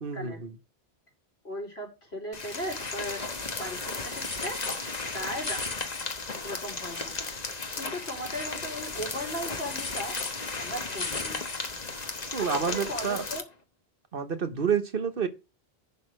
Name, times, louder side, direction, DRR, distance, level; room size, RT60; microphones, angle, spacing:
voice 1, 0.0-0.5 12.3-13.2 14.1-15.3, right 6 dB, 55° right, 1.2 m, -29 dB
voice 2, 1.4-3.2 3.6-4.6 5.1-5.7 6.4-7.3 7.8-10.2 10.6-11.4 12.4-13.4, equal, 75° left, 4.2 m, -37 dB
sound 1, 2.3-13.4, left 3 dB, 40° left, 1.3 m, -34 dB
11.0 x 4.2 x 6.4 m
omnidirectional pair, 1.1 m